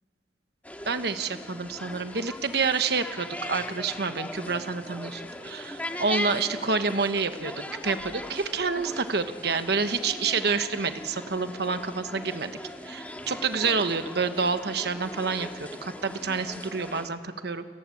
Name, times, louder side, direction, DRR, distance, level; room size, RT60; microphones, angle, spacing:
sound 1, 0.6-17.1, left 1 dB, 10° left, 1.7 m, -39 dB
voice 1, 0.9-7.5 7.8-12.5 12.8-17.6, right 4 dB, 65° right, 9 dB, 1.2 m, -28 dB
29.5 x 19.0 x 8.5 m, 2.2 s
head